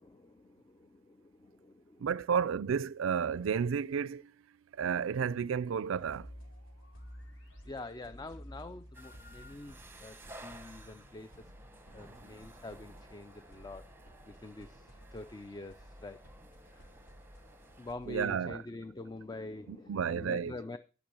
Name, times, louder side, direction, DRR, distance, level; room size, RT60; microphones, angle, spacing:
voice 1, 0.0-2.1 7.6-11.5 11.9-13.9 14.2-16.2 16.6-16.9 17.8-20.8, left 2 dB, 20° left, 0.4 m, -46 dB
voice 2, 2.0-4.3 4.8-6.3 18.1-18.6 19.7-20.5, right 7 dB, 75° right, 0.4 m, -32 dB
sound 1, 6.0-18.3, equal, 75° left, 4.6 m, -53 dB
sound 2, 8.9-17.9, right 1 dB, 10° right, 1.0 m, -55 dB
11.5 x 6.1 x 5.3 m
head